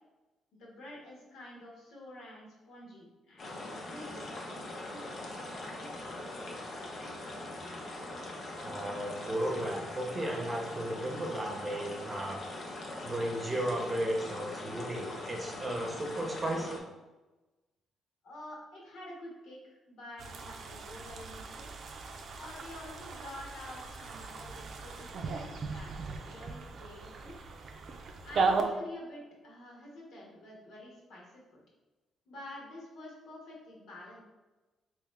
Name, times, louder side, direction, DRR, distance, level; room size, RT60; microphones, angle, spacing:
voice 1, 0.5-4.3 4.6-6.2 18.2-21.7 22.4-27.4 28.2-31.6 32.3-34.2, left 1 dB, 75° left, -3 dB, 1.4 m, -48 dB
sound 1, 3.4-16.8, left 1 dB, 50° left, 0.8 m, -42 dB
voice 2, 8.6-12.4 13.0-16.8, right 1 dB, 20° right, 0 dB, 0.8 m, -34 dB
sound 2, 20.2-28.6, right 4 dB, 60° right, 0.5 m, -37 dB
3.5 x 3.0 x 3.3 m, 1.1 s
cardioid pair, 90°, 0 cm